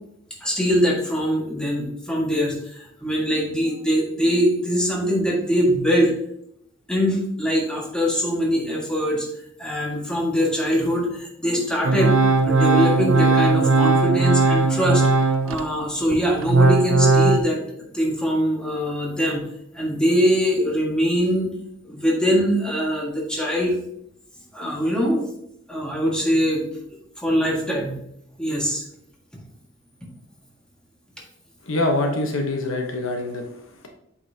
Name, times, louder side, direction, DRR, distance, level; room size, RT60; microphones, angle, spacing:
voice 1, 0.4-6.1 6.9-9.3 9.6-12.1 12.4-15.1 15.4-17.6 17.9-19.4 19.7-21.5 21.9-23.8 24.5-25.3 25.7-26.6 27.2-28.0 28.4-28.8, equal, 5° left, -3 dB, 1.6 m, -22 dB
Organ, 11.8-15.7 16.1-17.4, right 3 dB, 80° right, 0.5 m, -18 dB
voice 2, 31.6-33.9, left 2 dB, 85° left, 3 dB, 1.0 m, -25 dB
7.9 x 5.4 x 2.8 m, 0.76 s
head